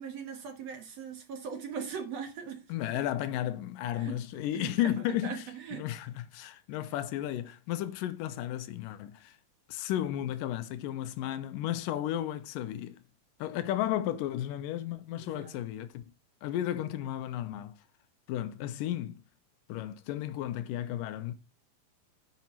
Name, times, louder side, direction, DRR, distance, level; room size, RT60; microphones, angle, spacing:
voice 1, 0.0-2.6 4.0-4.4 4.8-5.9 15.1-15.5, right 6 dB, 60° right, 2.0 m, -40 dB
voice 2, 2.7-9.4 9.7-13.0 13.4-16.0 16.4-17.8 18.3-19.2 19.7-21.3, left 12 dB, 80° left, 2.2 m, -33 dB
9.3 x 5.8 x 4.4 m
omnidirectional pair, 4.2 m